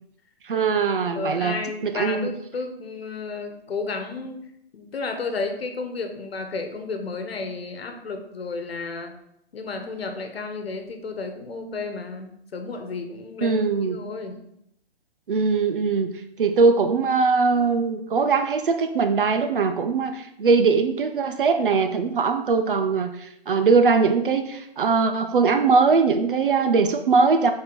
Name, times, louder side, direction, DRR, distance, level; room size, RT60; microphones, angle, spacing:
voice 1, 0.4-1.5 1.8-2.3 13.4-14.0 15.3-16.1 16.4-27.5, right 4 dB, 60° right, 8 dB, 0.6 m, -21 dB
voice 2, 1.1-4.4 4.7-9.1 9.5-14.4, left 3 dB, 75° left, 6 dB, 1.2 m, -32 dB
6.8 x 4.2 x 3.8 m, 0.78 s
hypercardioid pair, 160°, 31 cm